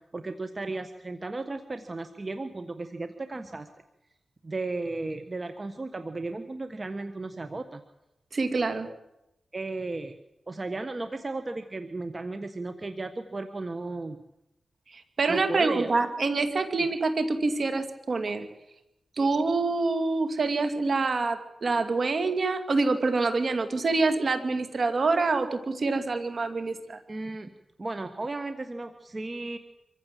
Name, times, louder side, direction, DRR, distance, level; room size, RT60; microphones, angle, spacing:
voice 1, 0.0-3.7 4.4-7.8 9.5-10.2 10.5-14.2 15.3-15.9 27.1-27.5 27.8-29.6, right 2 dB, 40° right, 8 dB, 1.4 m, -35 dB
voice 2, 8.3-8.9 14.9-18.5 19.2-27.0, right 3 dB, 60° right, 8 dB, 2.5 m, -26 dB
25.0 x 15.5 x 7.7 m, 0.90 s
cardioid pair, 50°, 0 cm